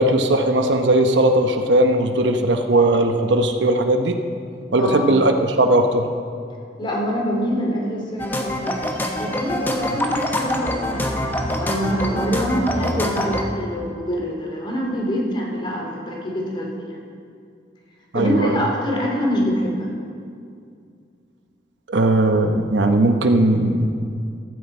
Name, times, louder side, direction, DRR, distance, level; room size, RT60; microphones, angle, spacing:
voice 1, 0.0-4.2 4.7-6.1 18.1-18.6 21.9-23.9, right 1 dB, 85° right, 5 dB, 0.9 m, -18 dB
voice 2, 4.8-5.1 6.8-8.8 9.2-17.0 18.1-19.9, equal, 30° left, -1 dB, 2.4 m, -25 dB
sound 1, 8.2-13.4, left 1 dB, 10° left, 0.9 m, -25 dB
15.0 x 13.0 x 4.4 m, 2.3 s
head